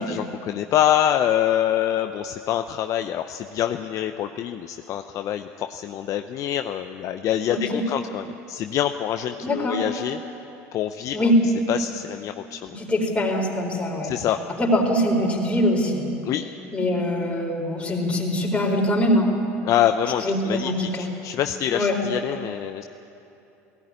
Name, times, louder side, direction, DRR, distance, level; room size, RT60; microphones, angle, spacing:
voice 1, 0.0-10.2 10.7-11.3 11.7-12.8 14.0-14.4 16.2-16.4 19.6-20.7 21.0-22.8, left 11 dB, 50° left, 7 dB, 0.7 m, -25 dB
voice 2, 7.5-7.8 9.4-9.8 11.1-11.4 12.7-14.1 14.6-16.1 16.7-19.3 20.2-21.1 21.7-22.0, left 1 dB, 15° left, 0 dB, 4.3 m, -23 dB
17.5 x 16.5 x 9.7 m, 2.9 s
hypercardioid pair, 90°, 7 cm